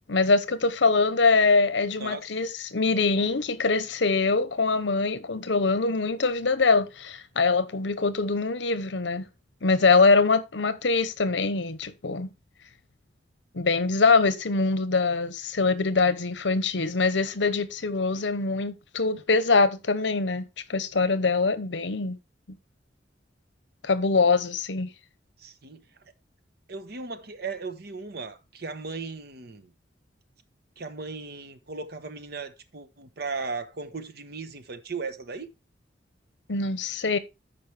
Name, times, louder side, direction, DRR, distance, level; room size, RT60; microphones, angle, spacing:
voice 1, 0.1-9.3 9.6-12.3 13.5-22.2 22.5-22.6 23.8-24.9 36.5-37.2, left 4 dB, 75° left, 0.9 m, -23 dB
voice 2, 2.0-2.3 25.4-25.8 26.7-29.7 30.8-35.5, right 4 dB, 60° right, 1.0 m, -37 dB
13.0 x 5.2 x 3.3 m
head